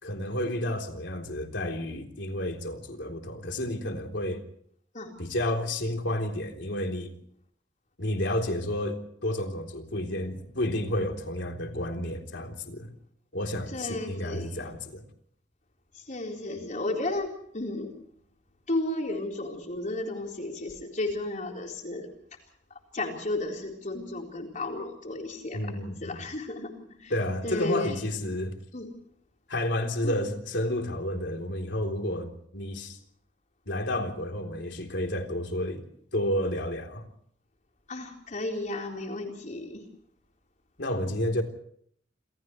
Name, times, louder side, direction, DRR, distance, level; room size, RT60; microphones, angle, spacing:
voice 1, 0.0-4.4 5.2-7.1 8.0-12.9 13.3-15.0 25.5-26.2 27.1-28.6 29.5-33.0 33.7-35.9 36.1-37.0 40.8-41.4, left 1 dB, 70° left, 3.7 m, -31 dB
voice 2, 13.7-14.5 15.9-17.9 18.7-22.1 22.9-25.6 26.0-27.1 27.4-28.1 28.7-28.9 30.0-30.2 37.9-39.9, left 2 dB, 45° left, 4.1 m, -33 dB
29.0 x 27.5 x 3.2 m
head